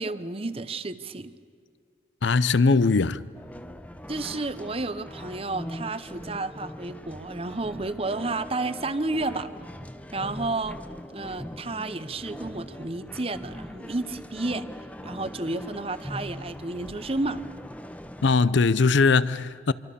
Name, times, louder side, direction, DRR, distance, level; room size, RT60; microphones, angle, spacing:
voice 1, 0.0-1.3 4.1-9.5 10.1-10.8 11.1-14.7 15.0-17.4, right 2 dB, 30° right, 0.8 m, -31 dB
voice 2, 2.2-3.2 18.2-19.7, left 4 dB, 80° left, 0.6 m, -20 dB
sound 1, 3.3-18.4, equal, 10° left, 0.7 m, -41 dB
26.5 x 23.5 x 6.9 m
head